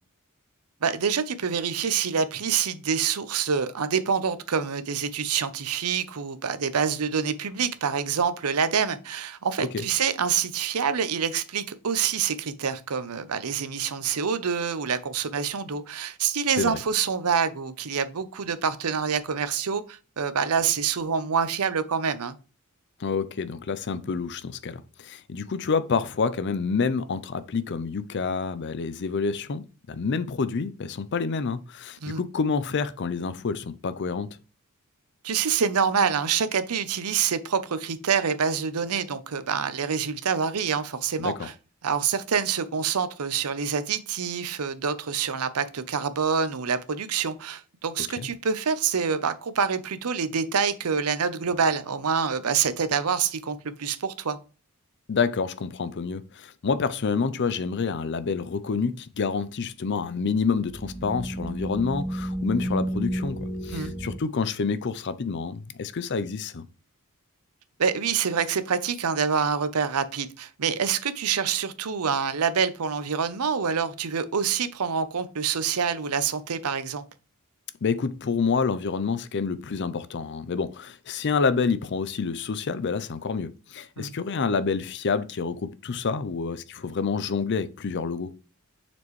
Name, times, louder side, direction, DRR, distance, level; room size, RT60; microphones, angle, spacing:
voice 1, 0.8-22.4 32.0-32.2 35.2-41.5 41.8-54.4 63.7-63.9 67.8-77.0 84.0-84.1, right 6 dB, 85° right, 0.7 m, -26 dB
voice 2, 23.0-34.3 41.2-41.5 48.2-48.3 55.1-66.7 77.8-88.3, left 5 dB, 50° left, 0.5 m, -28 dB
sound 1, 60.6-64.2, right 1 dB, 5° left, 1.3 m, -31 dB
7.0 x 4.4 x 3.1 m
head